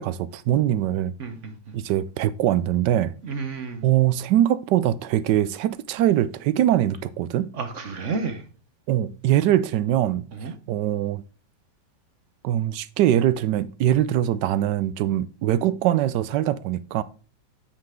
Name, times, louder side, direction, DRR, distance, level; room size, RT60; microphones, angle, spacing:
voice 1, 0.0-1.1 1.7-3.1 3.8-7.5 8.9-10.2 10.7-11.2 12.4-17.0, right 12 dB, 75° right, 1.2 m, -22 dB
voice 2, 1.2-1.5 3.2-3.8 7.5-8.4 10.4-10.5, right 4 dB, 50° right, 1.1 m, -31 dB
8.8 x 5.7 x 3.6 m
omnidirectional pair, 1.9 m